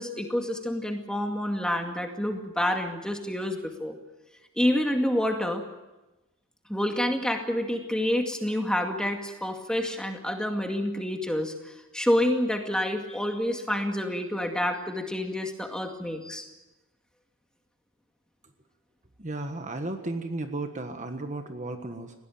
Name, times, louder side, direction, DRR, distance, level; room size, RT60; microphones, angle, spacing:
voice 1, 0.0-4.0 4.6-5.6 6.7-16.5, left 1 dB, 5° left, 3 dB, 2.1 m, -28 dB
voice 2, 19.2-22.1, right 2 dB, 35° right, 6 dB, 1.5 m, -34 dB
20.5 x 17.0 x 9.2 m, 1.1 s
head